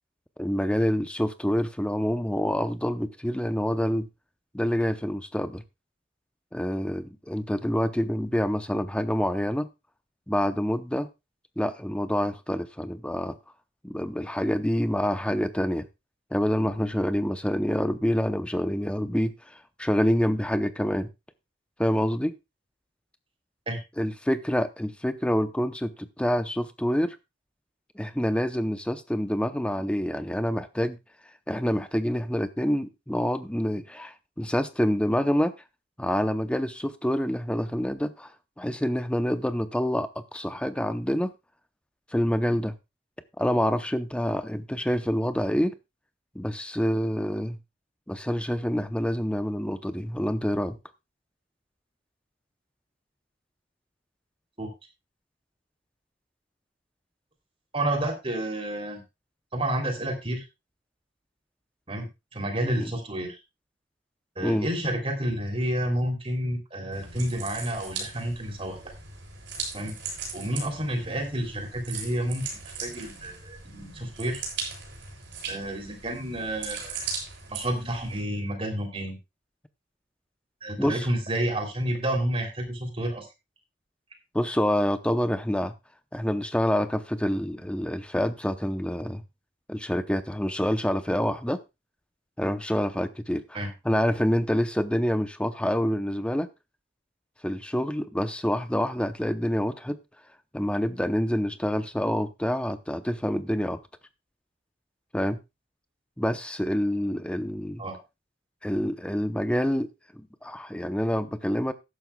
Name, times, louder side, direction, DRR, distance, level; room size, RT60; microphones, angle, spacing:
voice 1, 0.4-4.1 4.5-5.6 6.5-9.7 10.3-11.1 11.6-13.4 13.8-15.9 16.3-19.3 19.8-21.1 21.8-22.3 24.0-27.2 28.0-31.0 31.5-35.5 36.0-38.3 38.6-41.3 42.1-42.7 43.4-45.7 46.3-47.6 48.1-50.8 62.7-62.9 64.4-64.7 80.8-81.1 84.3-85.7 86.1-89.2 89.7-91.6 92.4-96.5 97.4-100.0 100.5-103.8 105.1-105.4 106.2-107.8 108.6-109.9 110.1-111.7, equal, 5° left, 0.7 m, -27 dB
voice 2, 57.7-59.0 59.5-60.4 61.9-62.1 62.3-63.4 64.4-68.8 69.7-69.9 70.3-74.4 75.5-77.1 77.5-79.2 80.6-83.3 93.5-93.7 107.8-108.0, right 1 dB, 30° right, 3.1 m, -30 dB
sound 1, 66.9-78.2, right 5 dB, 65° right, 7.3 m, -38 dB
14.0 x 11.5 x 2.3 m
head